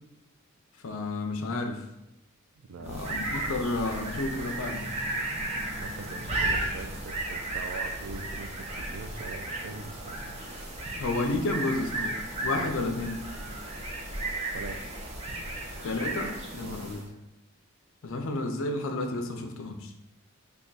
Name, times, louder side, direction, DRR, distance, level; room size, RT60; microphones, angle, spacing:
voice 1, 0.8-1.8 2.8-4.8 11.0-12.2 12.4-13.2 15.8-17.0 18.0-19.9, left 2 dB, 65° left, 4 dB, 0.5 m, -31 dB
voice 2, 2.6-3.0 5.7-10.4 12.6-12.7 14.5-14.9 16.6-16.8, right 4 dB, 80° right, 7 dB, 0.4 m, -42 dB
sound 1, 2.8-17.1, right 2 dB, 30° right, 0.5 m, -34 dB
3.4 x 2.2 x 3.9 m, 0.87 s
head